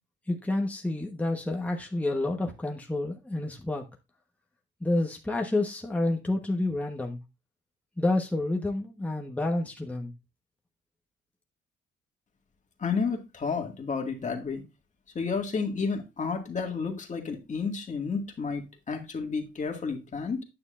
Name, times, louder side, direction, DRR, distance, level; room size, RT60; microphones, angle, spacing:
voice 1, 0.3-3.8 4.8-7.2 8.0-10.1, left 2 dB, 5° left, 1.2 m, -29 dB
voice 2, 12.8-14.6 15.1-20.4, left 5 dB, 40° left, 2.0 m, -31 dB
9.6 x 6.3 x 2.5 m
cardioid pair, 90°, 20 cm